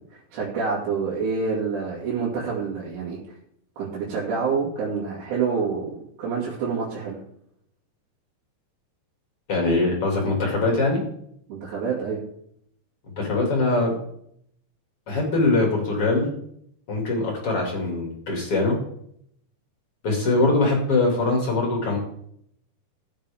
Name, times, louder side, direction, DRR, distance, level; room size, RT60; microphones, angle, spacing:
voice 1, 0.0-3.2 3.8-7.2 11.5-12.2, right 5 dB, 80° right, -6 dB, 4.4 m, -27 dB
voice 2, 9.5-11.0 13.2-13.9 15.1-16.3 16.9-18.8 20.0-22.0, left 2 dB, 40° left, 0 dB, 2.7 m, -22 dB
15.0 x 7.9 x 3.5 m, 0.69 s
omnidirectional pair, 4.9 m